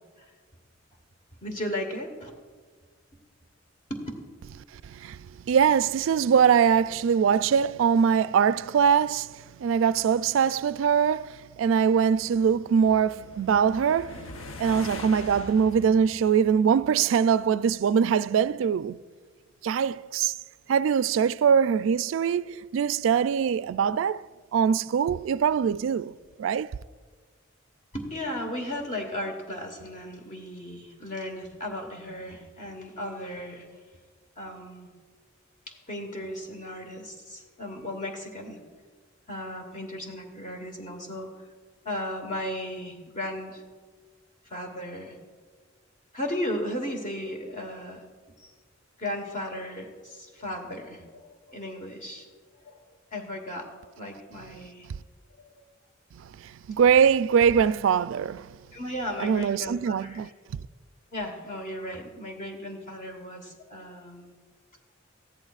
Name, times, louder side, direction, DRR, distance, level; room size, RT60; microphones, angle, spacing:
voice 1, 1.4-2.3 3.9-4.0 13.6-13.7 27.9-33.8 34.4-34.9 35.9-38.6 39.3-41.3 41.8-43.6 44.4-45.2 46.1-48.1 48.4-48.5 49.0-52.3 52.6-54.9 55.6-55.7 58.7-60.3 61.1-64.3, left 1 dB, 40° left, 1.3 m, -36 dB
voice 2, 4.8-5.2 5.5-14.2 14.6-19.0 19.6-20.3 20.7-24.2 24.5-26.7 56.2-58.5 59.2-60.3, right 7 dB, 70° right, 0.3 m, -23 dB
sound 1, 11.7-17.2, left 2 dB, 85° left, 0.8 m, -43 dB
19.5 x 14.0 x 2.4 m
head